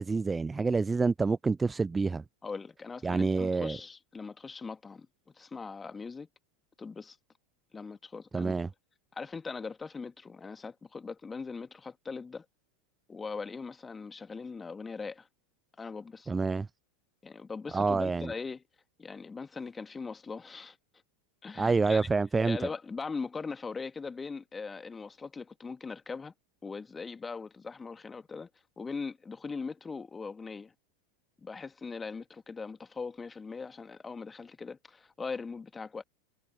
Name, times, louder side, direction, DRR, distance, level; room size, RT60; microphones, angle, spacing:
voice 1, 0.0-2.2 3.0-3.8 8.3-8.7 16.3-16.7 17.7-18.3 21.6-22.6, right 4 dB, 15° right, 0.3 m, -27 dB
voice 2, 2.4-5.1 5.3-6.3 6.8-7.2 7.7-8.6 9.1-12.4 13.1-15.3 15.8-16.3 17.2-18.6 19.0-20.8 21.4-22.1 22.4-26.3 26.6-28.5 28.8-30.7 31.4-36.0, left 4 dB, 15° left, 2.4 m, -40 dB
figure-of-eight pair, 85°, 0 cm